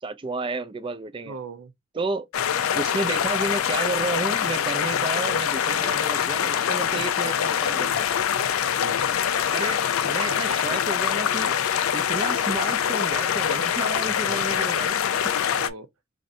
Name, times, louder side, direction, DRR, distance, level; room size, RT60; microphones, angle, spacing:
voice 1, 0.0-1.4 1.9-2.3 2.7-8.2 9.5-11.6 11.9-15.0, right 3 dB, 25° right, 0.3 m, -31 dB
voice 2, 1.2-1.7 6.9-7.4 8.8-9.2 10.3-10.8 14.2-14.5 15.6-15.9, right 4 dB, 90° right, 0.6 m, -40 dB
sound 1, 2.3-15.7, left 8 dB, 85° left, 0.4 m, -24 dB
2.6 x 2.5 x 4.1 m
head